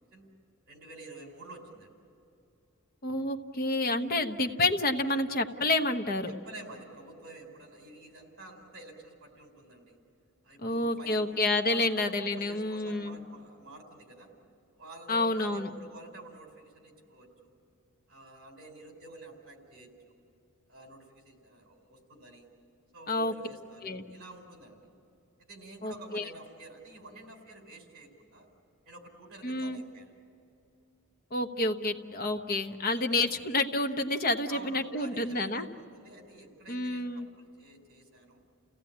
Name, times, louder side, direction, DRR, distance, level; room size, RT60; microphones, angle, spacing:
voice 1, 0.7-2.0 6.3-10.0 10.4-11.2 11.7-14.3 14.7-17.5 18.1-20.2 20.7-22.5 22.9-24.9 25.5-28.5 28.8-30.1 32.9-33.1 34.5-38.4, right 2 dB, 50° right, 3 dB, 4.5 m, -49 dB
voice 2, 3.0-6.3 10.6-13.2 15.1-15.7 23.1-23.3 23.8-24.0 25.8-26.2 29.4-29.8 31.3-35.7 36.7-37.3, left 2 dB, 45° left, 6 dB, 1.1 m, -29 dB
29.5 x 17.0 x 8.7 m, 2.6 s
head